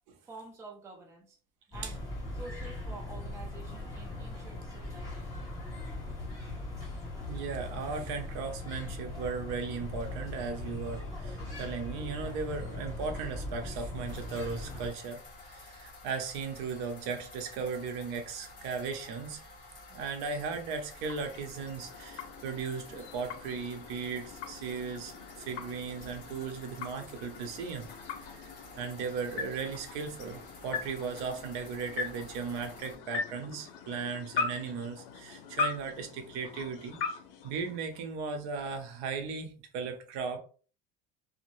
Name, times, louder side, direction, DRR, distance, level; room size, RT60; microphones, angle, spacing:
voice 1, 0.3-1.4 1.7-2.0 2.3-5.5 27.0-27.1, right 2 dB, 10° right, 0.4 m, -48 dB
sound 1, 1.7-14.9, left 2 dB, 10° left, 1.3 m, -40 dB
voice 2, 7.3-19.4 19.9-27.9 28.3-28.4 28.8-37.0 37.4-40.4, right 5 dB, 60° right, 0.7 m, -37 dB
sound 2, 14.1-33.0, left 2 dB, 30° left, 1.0 m, -51 dB
sound 3, 20.5-38.3, left 4 dB, 70° left, 0.7 m, -41 dB
2.7 x 2.1 x 3.1 m
supercardioid pair, 155°, 29 cm